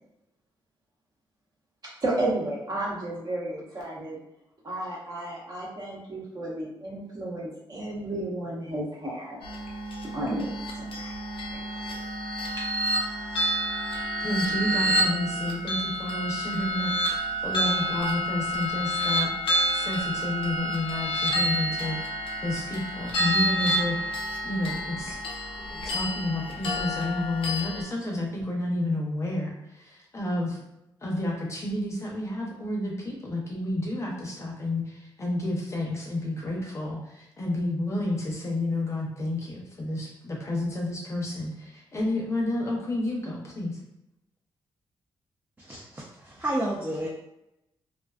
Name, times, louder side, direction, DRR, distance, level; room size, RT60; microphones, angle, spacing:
voice 1, 2.0-4.2 4.6-9.4 10.1-11.1 11.5-11.9, right 1 dB, 45° right, -5 dB, 1.0 m, -32 dB
sound 1, 9.4-27.8, equal, 85° left, 0.5 m, -29 dB
voice 2, 14.2-19.3 19.7-25.2 25.7-30.6 31.0-43.8, left 1 dB, 35° left, -2 dB, 0.6 m, -30 dB
voice 3, 45.6-47.1, right 1 dB, 20° right, -5 dB, 0.5 m, -31 dB
2.4 x 2.3 x 2.3 m, 0.89 s
cardioid pair, 95°, 9 cm